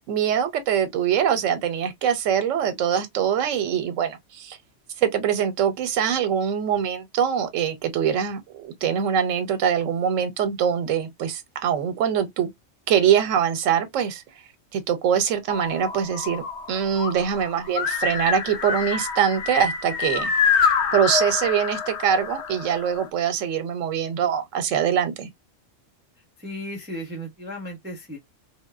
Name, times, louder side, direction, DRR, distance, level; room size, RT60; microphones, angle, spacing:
voice 1, 0.0-4.6 5.0-12.5 12.9-14.2 14.7-20.3 20.6-25.3, right 8 dB, 85° right, 1.0 m, -23 dB
sound 1, 15.5-23.1, left 6 dB, 70° left, 1.0 m, -26 dB
voice 2, 26.4-28.2, equal, 10° right, 0.5 m, -35 dB
3.1 x 2.1 x 2.2 m
omnidirectional pair, 1.3 m